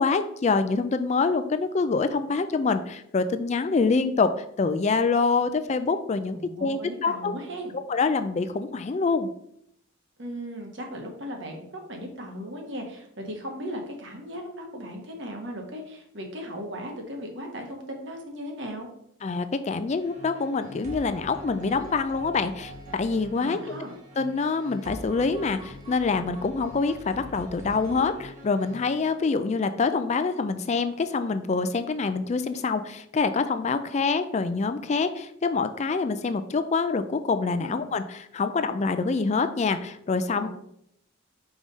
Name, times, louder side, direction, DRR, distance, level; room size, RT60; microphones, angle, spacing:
voice 1, 0.0-4.3 4.6-7.3 7.9-9.3 19.2-23.6 24.2-40.5, left 4 dB, 35° left, 10 dB, 0.4 m, -26 dB
voice 2, 6.3-7.7 10.2-18.9 23.4-23.9 37.6-37.8 40.4-40.5, equal, 60° right, 2 dB, 1.4 m, -37 dB
sound 1, 20.0-29.1, equal, 35° right, 1.4 m, -44 dB
5.3 x 4.8 x 4.1 m, 0.71 s
head